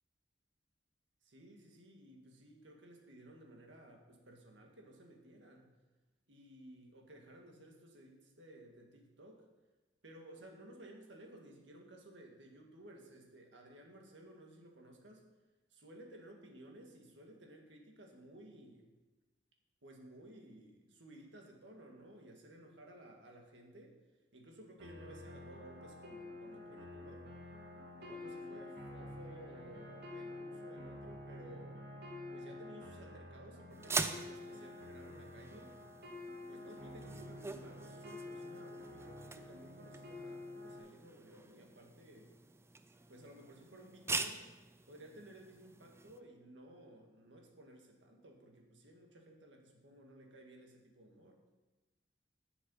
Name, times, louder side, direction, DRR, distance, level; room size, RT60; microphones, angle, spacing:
voice 1, 1.2-5.7 6.3-9.5 10.0-15.3 15.7-18.9 19.8-24.0 24.3-27.3 28.0-31.8 32.3-35.8 36.5-42.3 43.1-44.4 44.9-51.4, right 1 dB, 85° right, 1 dB, 1.9 m, -56 dB
sound 1, 24.8-40.8, left 2 dB, 60° right, 2.2 m, -49 dB
sound 2, 33.7-46.2, right 3 dB, 15° right, 0.5 m, -44 dB
11.0 x 7.1 x 5.6 m, 1.2 s
head